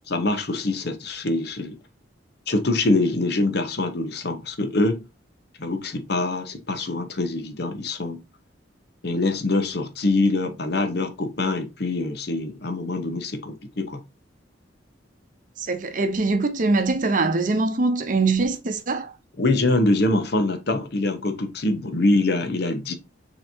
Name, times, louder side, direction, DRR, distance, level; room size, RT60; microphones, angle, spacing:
voice 1, 0.1-1.8 2.5-5.1 5.6-8.2 9.0-14.0 19.4-22.9, left 2 dB, 60° left, 0.8 m, -24 dB
voice 2, 15.6-19.1, right 3 dB, 45° right, 0.7 m, -23 dB
6.7 x 2.9 x 2.6 m
head